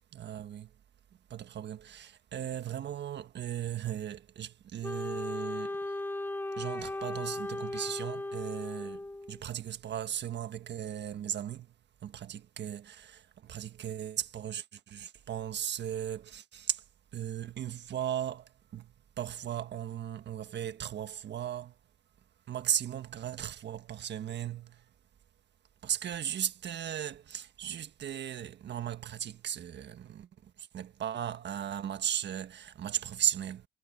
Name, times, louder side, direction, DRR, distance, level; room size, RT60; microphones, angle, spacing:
voice 1, 0.1-0.7 1.3-5.8 6.6-11.7 12.0-16.8 17.1-21.7 22.5-24.8 25.8-33.7, right 10 dB, 60° right, 1.5 m, -37 dB
Wind instrument woodwind instrument, 4.8-9.4, left 2 dB, 10° left, 0.8 m, -37 dB
cardioid pair, 90°, 20 cm